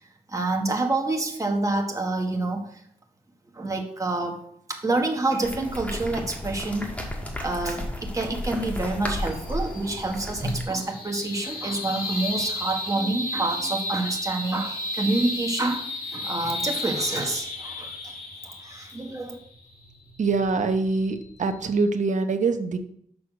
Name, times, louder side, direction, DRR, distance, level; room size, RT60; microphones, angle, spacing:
voice 1, 0.3-2.7 3.5-4.4 4.7-6.9 7.4-15.9 16.1-18.1 18.4-19.4, right 2 dB, 20° right, 2 dB, 1.5 m, -27 dB
sound 1, 5.4-10.6, equal, 10° left, 1.6 m, -33 dB
sound 2, 9.2-21.8, left 1 dB, 85° left, 2.0 m, -34 dB
voice 2, 20.2-22.8, right 4 dB, 55° right, 8 dB, 0.9 m, -24 dB
6.4 x 5.9 x 6.1 m, 0.67 s
wide cardioid pair, 115°, 15 cm